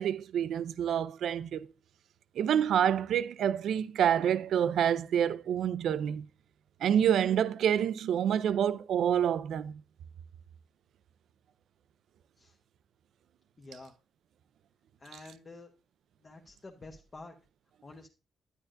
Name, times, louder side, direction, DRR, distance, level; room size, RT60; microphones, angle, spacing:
voice 1, 0.0-1.7 2.4-6.3 6.8-9.8, right 9 dB, 70° right, 0.4 m, -27 dB
voice 2, 13.6-13.9 15.0-15.7 16.2-17.3 17.8-18.1, left 3 dB, 25° left, 0.9 m, -49 dB
10.5 x 10.0 x 2.5 m
cardioid pair, 135°, 0 cm